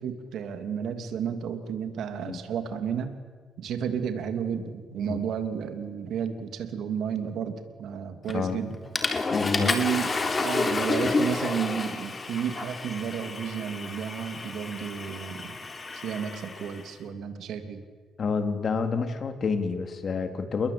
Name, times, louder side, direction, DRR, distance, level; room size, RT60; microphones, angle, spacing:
voice 1, 0.0-3.1 3.6-8.8 9.4-17.8, right 7 dB, 75° right, 8 dB, 3.1 m, -32 dB
Water / Toilet flush, 8.3-8.5 8.9-16.8, left 3 dB, 30° left, 3.5 m, -30 dB
voice 2, 9.3-9.7 18.2-20.7, left 5 dB, 50° left, 8 dB, 3.5 m, -28 dB
29.5 x 21.5 x 8.9 m, 1.5 s
cardioid pair, 90°, 0 cm